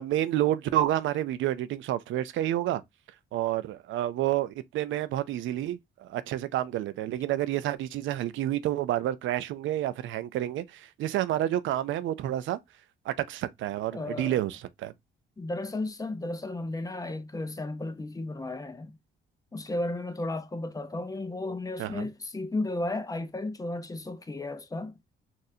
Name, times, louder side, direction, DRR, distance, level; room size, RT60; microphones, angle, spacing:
voice 1, 0.0-2.8 3.3-12.6 13.1-14.9 21.8-22.1, right 13 dB, 75° right, 0.4 m, -29 dB
voice 2, 13.9-14.4 15.4-19.0 19.5-24.9, left 2 dB, 15° left, 0.6 m, -34 dB
4.0 x 2.5 x 2.7 m
cardioid pair, 90°, 20 cm